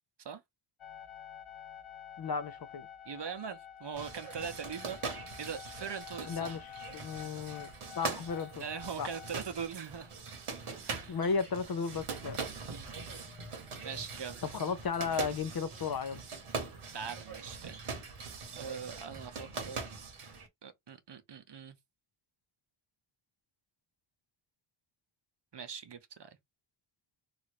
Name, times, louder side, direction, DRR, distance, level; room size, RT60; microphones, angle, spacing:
sound 1, 0.8-10.2 10.9-11.0 11.1-11.2 12.8-15.6 15.9-17.3, left 8 dB, 75° left, 0.8 m, -51 dB
voice 1, 2.2-2.9 6.3-7.7 7.9-8.6 9.0-9.1 11.1-12.4 14.5-16.2, left 5 dB, 50° left, 0.5 m, -34 dB
voice 2, 3.1-5.0 5.4-6.6 8.6-10.1 10.8-11.2 12.7-12.9 13.8-14.4 16.9-17.8 18.2-19.9 20.6-21.8 25.5-26.4, right 6 dB, 55° right, 0.7 m, -42 dB
sound 2, 3.9-20.5, right 5 dB, 90° right, 0.9 m, -42 dB
3.1 x 2.5 x 2.9 m
wide cardioid pair, 60°, 50 cm